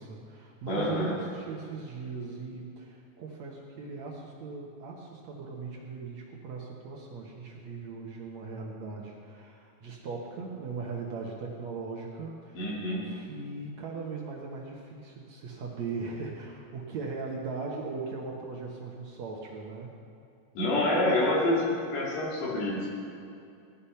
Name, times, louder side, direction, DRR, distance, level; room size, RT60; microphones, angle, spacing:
voice 1, 0.0-12.6 13.0-19.9, right 4 dB, 70° right, -1 dB, 1.7 m, -39 dB
voice 2, 0.7-1.2 12.6-13.1 20.6-21.6 21.9-22.9, left 1 dB, 75° left, -4 dB, 4.9 m, -27 dB
16.5 x 11.5 x 5.7 m, 2.5 s
omnidirectional pair, 5.0 m